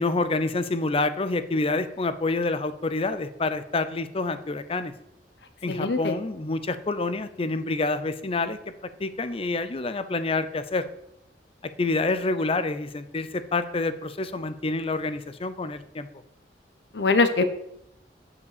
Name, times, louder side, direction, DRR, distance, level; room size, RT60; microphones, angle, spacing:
voice 1, 0.0-4.9 5.6-8.6 9.0-10.9 11.6-16.1, left 3 dB, 35° left, 12 dB, 0.5 m, -27 dB
voice 2, 5.7-6.2 16.9-17.4, left 3 dB, 75° left, 9 dB, 0.8 m, -22 dB
6.9 x 5.1 x 6.7 m, 0.80 s
head